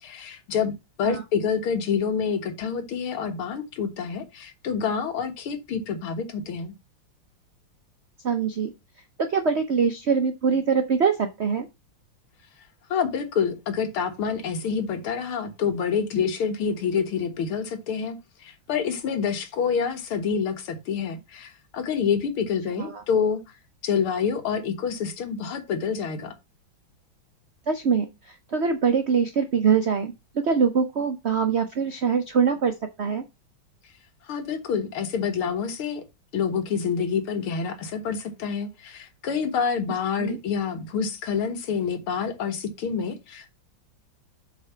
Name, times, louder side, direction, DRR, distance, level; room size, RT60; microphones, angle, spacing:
voice 1, 0.0-6.7 12.9-18.2 18.4-23.4 23.8-26.3 34.3-36.0 36.3-43.5, left 6 dB, 90° left, 2.3 m, -27 dB
voice 2, 8.2-8.7 9.2-11.7 22.8-23.0 27.7-30.1 30.4-33.2 40.2-40.4, right 6 dB, 80° right, 0.6 m, -23 dB
7.7 x 4.1 x 5.6 m
omnidirectional pair, 2.3 m